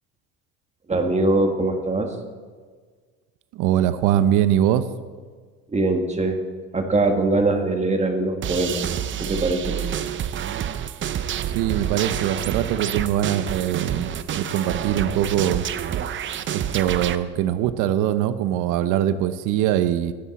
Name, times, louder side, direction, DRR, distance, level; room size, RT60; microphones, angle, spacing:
voice 1, 0.9-2.1 5.7-6.4 6.7-8.9 9.2-10.0, right 2 dB, 20° right, 5 dB, 1.7 m, -22 dB
voice 2, 3.5-4.8 11.5-15.7 16.5-20.1, right 11 dB, 70° right, 13 dB, 0.9 m, -22 dB
sound 1, 8.4-17.2, right 10 dB, 35° right, 0.7 m, -28 dB
15.0 x 11.0 x 4.2 m, 1.5 s
supercardioid pair, 95°, 32 cm